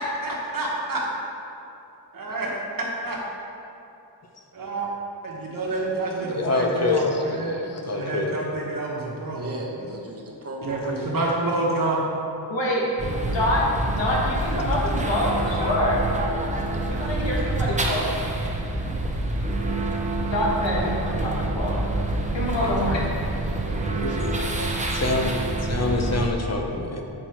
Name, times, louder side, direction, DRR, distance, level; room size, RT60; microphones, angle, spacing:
voice 1, 0.2-1.0 2.1-2.5 3.0-3.2 4.5-4.9 5.2-9.5 10.6-12.0, right 2 dB, 50° right, -4 dB, 1.3 m, -28 dB
voice 2, 6.3-8.4 24.0-24.3 24.6-24.7 24.9-25.3 25.6-27.0, left 3 dB, 35° left, 2 dB, 0.6 m, -26 dB
voice 3, 9.3-11.0 22.6-24.6, right 1 dB, 35° right, -1 dB, 0.9 m, -39 dB
voice 4, 12.5-12.9 13.2-16.0 16.9-18.1 20.3-21.8 22.3-23.1, left 1 dB, 85° left, -4 dB, 1.6 m, -25 dB
sound 1, 13.0-26.3, right 2 dB, 15° right, 0.5 m, -27 dB
7.7 x 4.3 x 4.5 m, 2.8 s
wide cardioid pair, 155°, 43 cm